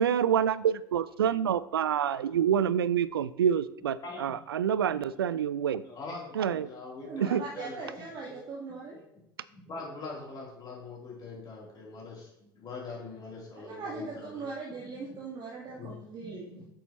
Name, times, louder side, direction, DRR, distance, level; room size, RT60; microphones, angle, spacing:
voice 1, 0.0-5.8 6.3-6.7 7.2-7.4, right 8 dB, 75° right, 18 dB, 0.4 m, -27 dB
voice 2, 5.8-7.9 9.5-14.4 15.1-15.2 15.8-16.3, left 3 dB, 35° left, -3 dB, 3.3 m, -43 dB
voice 3, 7.0-9.0 13.6-16.6, right 4 dB, 35° right, -4 dB, 1.7 m, -40 dB
8.5 x 6.8 x 3.0 m, 0.79 s
figure-of-eight pair, 75°, 13 cm